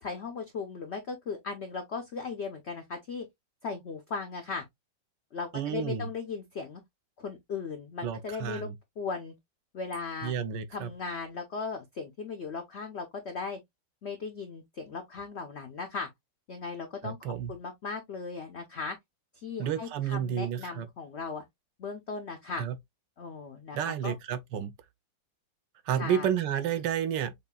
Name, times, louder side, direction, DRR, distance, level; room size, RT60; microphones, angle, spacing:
voice 1, 0.0-3.3 3.6-4.6 5.3-6.8 7.2-8.7 9.0-9.3 9.7-10.3 10.7-13.6 14.0-16.1 16.5-19.0 19.3-21.4 21.8-22.6 23.2-24.1 26.0-26.3, left 5 dB, 70° left, 0.6 m, -37 dB
voice 2, 5.5-6.1 8.0-8.7 10.2-10.9 17.0-17.5 19.6-20.9 22.6-22.8 23.7-24.7 25.9-27.3, right 9 dB, 75° right, 1.2 m, -31 dB
6.5 x 2.5 x 2.2 m
omnidirectional pair, 2.1 m